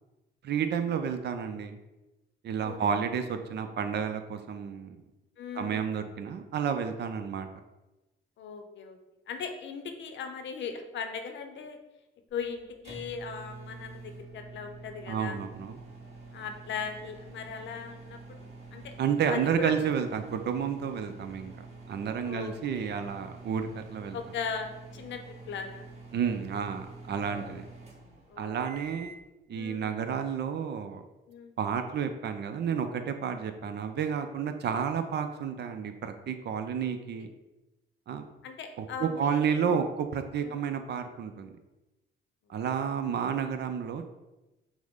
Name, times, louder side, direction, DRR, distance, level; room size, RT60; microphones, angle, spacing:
voice 1, 0.4-1.8 2.4-5.0 5.6-7.5 15.1-15.8 19.0-21.5 21.9-24.2 26.1-27.6 28.4-29.1 29.5-31.0 31.6-37.3 38.1-38.2 38.8-41.5 42.5-44.1, right 7 dB, 60° right, 8 dB, 0.5 m, -31 dB
voice 2, 5.4-5.8 8.4-9.0 9.3-11.8 12.3-15.4 16.3-18.9 19.3-19.7 22.2-22.9 24.1-25.2 25.5-25.9 28.3-28.7 29.5-29.9 31.3-31.6 36.8-37.2 38.4-39.5 40.4-40.6, left 6 dB, 70° left, 6 dB, 0.6 m, -39 dB
sound 1, 12.3-29.2, right 3 dB, 35° right, 1.3 m, -47 dB
5.9 x 2.1 x 3.7 m, 1.0 s
cardioid pair, 90°, 20 cm